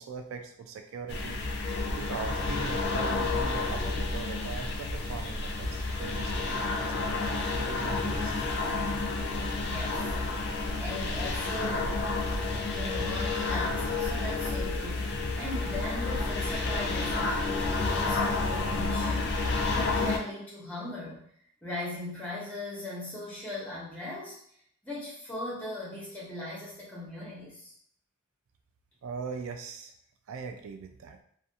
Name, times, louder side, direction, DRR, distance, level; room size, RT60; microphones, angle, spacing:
voice 1, 0.0-1.6 1.9-6.9 7.5-8.8 29.0-29.9 30.3-31.2, right 5 dB, 75° right, 6 dB, 0.3 m, -40 dB
sound 1, 1.1-20.2, left 3 dB, 50° left, 0.4 m, -30 dB
voice 2, 9.6-10.1 10.8-11.9 12.7-21.2 21.6-24.4 24.8-27.7, left 1 dB, 5° left, -6 dB, 0.8 m, -39 dB
2.4 x 2.2 x 2.7 m, 0.65 s
head